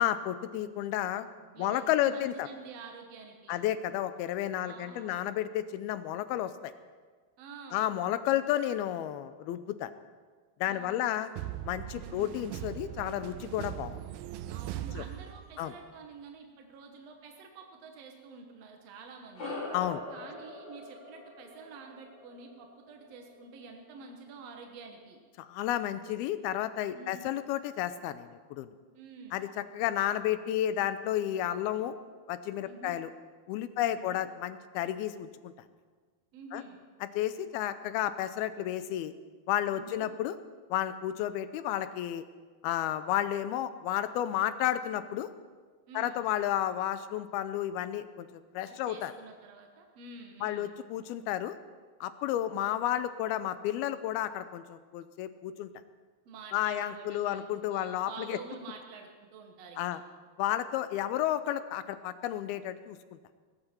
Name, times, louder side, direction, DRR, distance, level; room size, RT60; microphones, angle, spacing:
voice 1, 0.0-1.3 1.6-2.5 3.5-6.7 7.7-9.9 10.6-11.3 11.6-14.0 14.9-15.0 15.6-15.7 19.7-20.0 25.4-28.7 29.3-31.9 32.3-33.1 33.5-35.5 36.5-36.6 37.1-39.1 39.5-40.3 40.7-42.2 42.6-45.3 45.9-49.1 50.4-51.5 52.0-55.7 56.5-58.4 59.8-60.0 60.4-63.0, left 12 dB, 80° left, 12 dB, 2.4 m, -32 dB
voice 2, 1.4-3.6 4.6-5.2 7.4-7.9 10.6-11.2 12.0-12.3 14.5-19.6 20.1-25.2 26.9-27.4 28.9-29.5 32.6-33.0 33.8-34.2 36.3-36.8 39.7-40.1 45.9-46.2 48.7-50.7 56.3-57.5 57.7-60.0, right 4 dB, 65° right, 3 dB, 1.7 m, -48 dB
sound 1, 11.4-15.8, right 13 dB, 80° right, 2.2 m, -40 dB
sound 2, 19.4-24.1, left 2 dB, 35° left, 5.6 m, -43 dB
18.5 x 17.0 x 4.4 m, 1.5 s
omnidirectional pair, 4.7 m